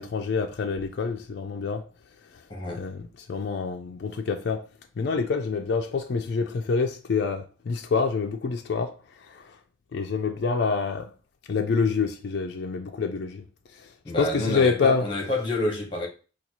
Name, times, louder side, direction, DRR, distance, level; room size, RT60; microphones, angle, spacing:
voice 1, 0.0-1.8 2.8-4.6 5.0-9.0 9.3-9.5 9.9-11.1 11.5-13.4 13.8-13.9 14.2-15.1, left 5 dB, 55° left, 0.3 m, -27 dB
voice 2, 2.5-2.8 14.0-16.1, left 2 dB, 25° left, 1.0 m, -28 dB
4.1 x 2.3 x 2.9 m
head